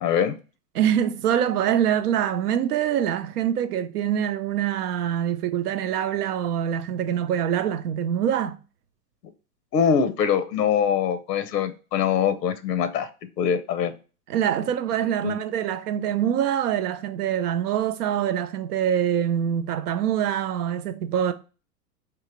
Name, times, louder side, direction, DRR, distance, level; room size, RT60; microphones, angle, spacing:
voice 1, 0.0-0.4 9.7-13.1 13.4-13.9 15.2-15.4, left 7 dB, 80° left, 0.8 m, -23 dB
voice 2, 0.7-8.6 14.3-21.3, right 9 dB, 70° right, 0.6 m, -24 dB
3.8 x 3.0 x 4.4 m
hypercardioid pair, 115°, 48 cm